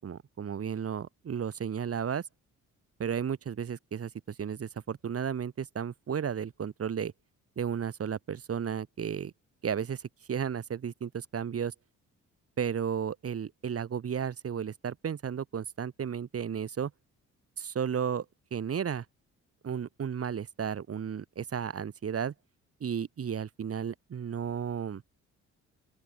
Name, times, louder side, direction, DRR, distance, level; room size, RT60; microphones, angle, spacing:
voice 1, 0.0-2.2 3.0-7.1 7.6-9.3 9.6-11.7 12.6-16.9 17.6-18.3 18.5-19.0 19.6-22.3 22.8-25.0, right 7 dB, 50° right, 4.2 m, -33 dB
open air
cardioid pair, 90°, 30 cm